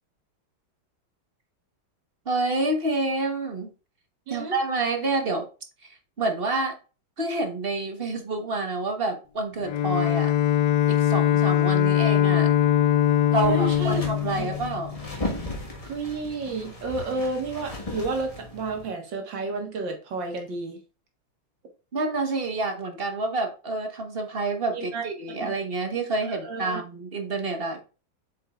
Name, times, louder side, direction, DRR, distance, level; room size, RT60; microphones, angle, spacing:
voice 1, 2.2-3.7 4.3-5.5 5.8-6.7 7.2-10.3 10.9-12.5 13.3-14.9 21.9-27.8, right 2 dB, 35° right, 1.2 m, -28 dB
voice 2, 4.3-4.6 13.4-14.0 14.4-14.5 15.8-20.8 24.7-25.0 25.4-25.5 26.2-26.8, right 3 dB, 65° right, 2.1 m, -31 dB
Bowed string instrument, 9.6-15.3, left 11 dB, 75° left, 1.1 m, -22 dB
sound 1, 13.4-18.9, left 1 dB, 20° left, 1.3 m, -36 dB
7.4 x 5.6 x 2.4 m
omnidirectional pair, 2.2 m